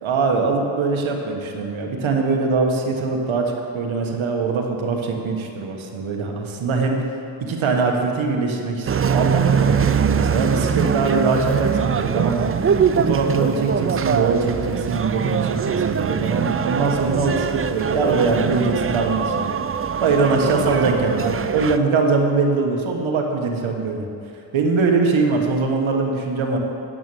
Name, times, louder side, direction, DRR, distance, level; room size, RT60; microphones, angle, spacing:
voice 1, 0.0-7.0 7.4-19.5 20.0-24.1 24.5-26.6, right 4 dB, 80° right, 2 dB, 1.3 m, -22 dB
sound 1, 8.9-21.8, right 7 dB, 30° right, 0.4 m, -22 dB
9.7 x 6.2 x 6.9 m, 2.5 s
cardioid pair, 50°, 47 cm